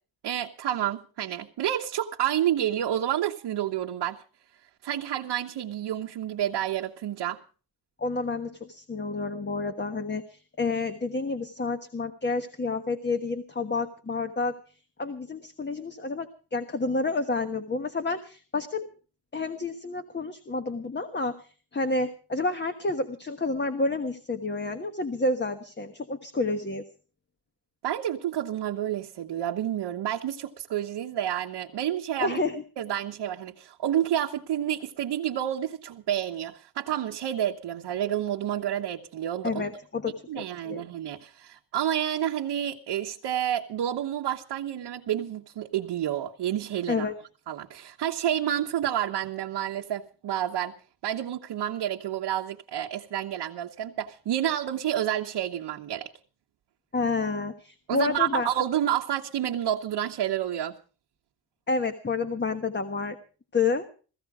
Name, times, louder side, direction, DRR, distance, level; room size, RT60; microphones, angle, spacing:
voice 1, 0.2-4.2 4.8-7.4 27.8-32.4 32.8-39.6 40.3-47.1 47.5-50.7 51.0-56.1 57.9-60.8, right 11 dB, 75° right, 1.3 m, -29 dB
voice 2, 8.0-14.6 15.0-18.9 19.3-21.4 21.7-26.8 32.2-32.6 39.4-40.8 46.9-47.1 56.9-58.5 61.7-63.2 63.5-63.9, left 3 dB, 25° left, 1.4 m, -29 dB
16.5 x 15.5 x 4.9 m
cardioid pair, 105°, 42 cm